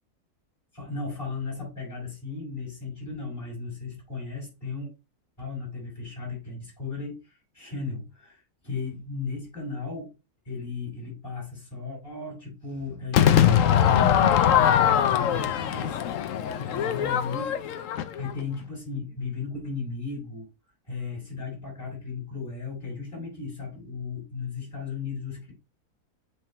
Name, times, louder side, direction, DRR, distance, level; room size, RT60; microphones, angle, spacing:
voice 1, 0.7-4.9 5.4-10.1 10.4-15.9 16.6-20.5 20.9-25.5, left 4 dB, 35° left, -8 dB, 5.3 m, -35 dB
Crowd / Fireworks, 13.1-18.4, left 10 dB, 65° left, 1.0 m, -22 dB
8.0 x 3.7 x 4.3 m, 0.27 s
omnidirectional pair, 1.6 m